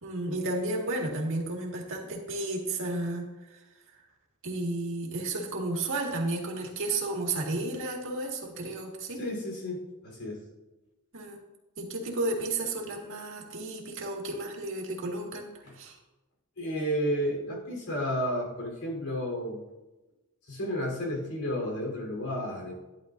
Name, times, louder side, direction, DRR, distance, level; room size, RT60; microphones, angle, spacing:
voice 1, 0.0-3.6 4.4-9.2 11.1-11.4 11.8-15.5 15.8-16.0, right 2 dB, 60° right, 0 dB, 1.9 m, -32 dB
voice 2, 9.2-10.4 15.6-15.8 16.6-19.6 20.5-22.7, equal, 80° left, -1 dB, 3.7 m, -32 dB
12.0 x 10.5 x 2.6 m, 1.1 s
head